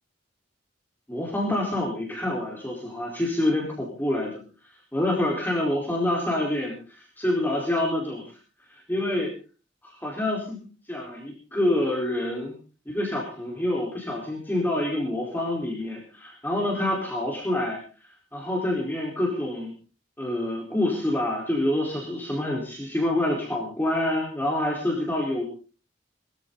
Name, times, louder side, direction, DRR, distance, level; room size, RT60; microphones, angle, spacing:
voice 1, 1.1-4.4 4.9-6.8 7.2-8.2 8.7-9.3 9.8-10.6 10.9-12.5 12.9-17.8 18.3-19.7 20.2-25.4, left 1 dB, 10° left, -2 dB, 4.6 m, -27 dB
22.5 x 14.5 x 4.1 m, 0.37 s
head